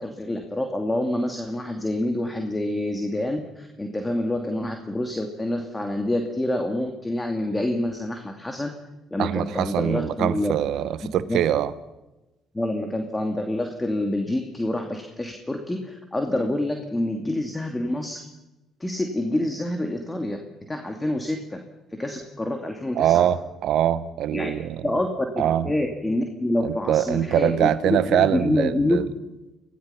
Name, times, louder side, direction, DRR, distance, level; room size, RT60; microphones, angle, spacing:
voice 1, 0.0-8.7 9.1-10.5 11.3-11.5 12.5-18.2 18.8-20.4 20.7-21.6 22.0-23.3 24.3-24.5 24.8-25.1 25.3-29.0, left 1 dB, 15° left, 4 dB, 2.7 m, -27 dB
voice 2, 9.2-11.7 23.0-24.8 25.4-25.7 26.6-29.0, right 11 dB, 65° right, 16 dB, 1.0 m, -23 dB
26.5 x 17.5 x 5.8 m, 1.0 s
hypercardioid pair, 50°, 0 cm